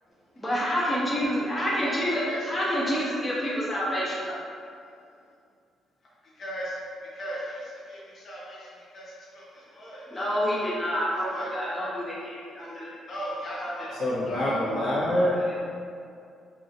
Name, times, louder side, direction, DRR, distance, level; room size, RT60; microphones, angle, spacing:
voice 1, 0.4-4.4 10.1-13.0 13.6-13.9 15.2-15.5, equal, 20° left, -7 dB, 0.8 m, -28 dB
voice 2, 1.5-1.9 2.2-2.4 6.4-10.7 11.3-11.5 12.6-12.8 13.0-14.9, equal, 55° left, -7 dB, 1.3 m, -39 dB
voice 3, 14.0-15.4, left 1 dB, 80° left, -10 dB, 1.5 m, -25 dB
4.7 x 2.7 x 2.9 m, 2.4 s
cardioid pair, 90°, 0 cm